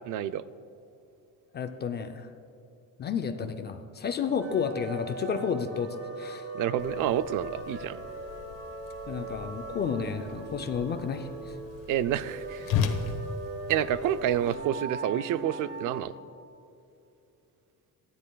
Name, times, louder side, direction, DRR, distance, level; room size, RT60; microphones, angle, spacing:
voice 1, 0.1-0.4 6.5-8.0 11.9-12.7 13.7-16.1, right 10 dB, 60° right, 14 dB, 0.4 m, -28 dB
voice 2, 1.5-2.3 3.0-6.5 9.1-11.6, left 6 dB, 30° left, 7 dB, 0.4 m, -31 dB
sound 1, 4.4-16.0, right 2 dB, 45° right, 2.4 m, -40 dB
Whoosh swoosh swish, 6.8-14.5, left 6 dB, 65° left, 1.1 m, -37 dB
23.0 x 10.0 x 2.3 m, 2.7 s
cardioid pair, 160°, 35 cm